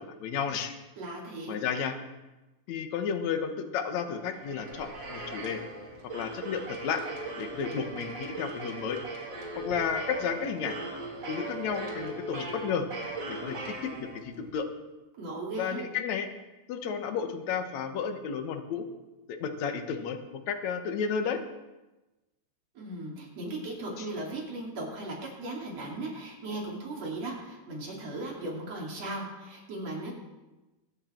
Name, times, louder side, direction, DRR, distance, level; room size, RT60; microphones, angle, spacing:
voice 1, 0.0-0.8 1.5-2.0 2.7-5.6 6.1-7.0 7.4-9.0 9.6-10.8 11.3-12.9 13.3-14.7 15.6-16.3 16.7-18.8 19.3-20.2 20.5-21.4 24.0-24.1, left 6 dB, 70° left, 6 dB, 2.5 m, -32 dB
voice 2, 1.0-1.5 15.2-15.9 22.8-30.1, right 2 dB, 60° right, -2 dB, 4.1 m, -37 dB
sound 1, 4.0-14.5, right 2 dB, 40° right, 2.7 m, -39 dB
22.5 x 9.8 x 4.5 m, 1.1 s
omnidirectional pair, 3.4 m